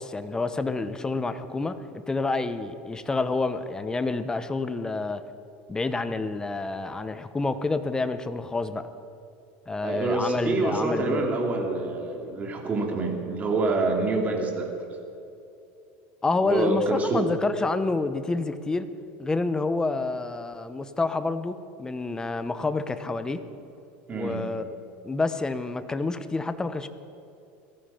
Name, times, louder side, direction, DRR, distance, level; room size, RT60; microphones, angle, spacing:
voice 1, 0.0-5.2 5.7-8.9 9.7-11.2 16.2-18.9 19.2-23.4 24.1-24.6 25.0-26.9, left 3 dB, 10° left, 11 dB, 0.8 m, -28 dB
voice 2, 9.8-14.7 16.5-17.3 24.1-24.5, right 3 dB, 25° right, 2 dB, 2.9 m, -26 dB
18.0 x 14.0 x 5.7 m, 2.7 s
supercardioid pair, 135°, 6 cm